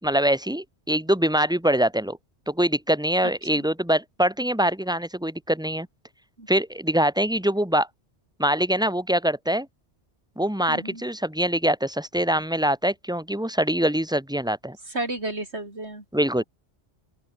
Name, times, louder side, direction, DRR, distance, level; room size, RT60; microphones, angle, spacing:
voice 1, 0.0-2.2 2.5-5.9 6.5-7.9 8.4-9.7 10.4-14.8 16.1-16.4, right 1 dB, 5° right, 2.7 m, -23 dB
voice 2, 10.7-11.0 14.9-16.0, right 2 dB, 70° right, 5.8 m, -32 dB
open air
omnidirectional pair, 1.2 m